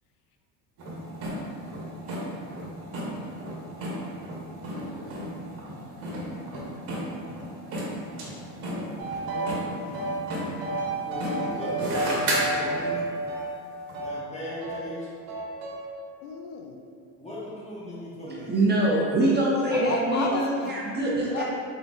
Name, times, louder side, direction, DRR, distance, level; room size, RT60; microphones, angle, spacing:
sound 1, 0.8-13.0 13.9-14.0, right 1 dB, 50° right, 1.1 m, -34 dB
voice 1, 8.7-10.2 16.2-16.8 19.7-20.7 21.3-21.4, left 4 dB, 80° left, 3 dB, 0.6 m, -35 dB
sound 2, 9.0-9.6 9.9-14.2 14.6-14.9 15.3-15.9, right 2 dB, 80° right, 1.0 m, -31 dB
voice 2, 11.1-13.0 14.0-15.1 17.2-18.5 19.7-19.8, left 1 dB, 15° left, -7 dB, 1.1 m, -38 dB
voice 3, 18.3-21.4, right 1 dB, 20° right, -5 dB, 0.6 m, -24 dB
3.7 x 3.7 x 2.4 m, 2.4 s
supercardioid pair, 95°, 48 cm